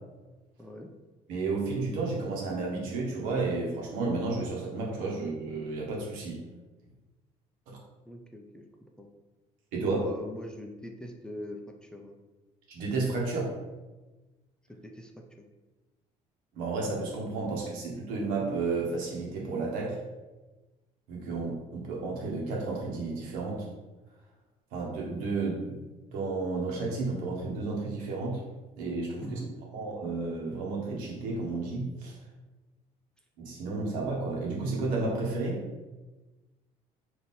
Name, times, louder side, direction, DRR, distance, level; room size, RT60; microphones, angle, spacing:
voice 1, 0.6-0.9 8.1-8.6 9.0-9.1 9.9-12.2 14.7-15.2 29.2-29.5, equal, 5° left, 2 dB, 0.5 m, -42 dB
voice 2, 1.3-6.4 7.7-7.8 9.7-10.0 12.7-13.5 16.5-20.0 21.1-23.7 24.7-25.8 26.1-28.4 28.8-29.4 29.7-32.2 33.4-35.7, right 3 dB, 85° right, -2 dB, 1.1 m, -32 dB
3.6 x 2.8 x 4.1 m, 1.2 s
cardioid pair, 100°, 14 cm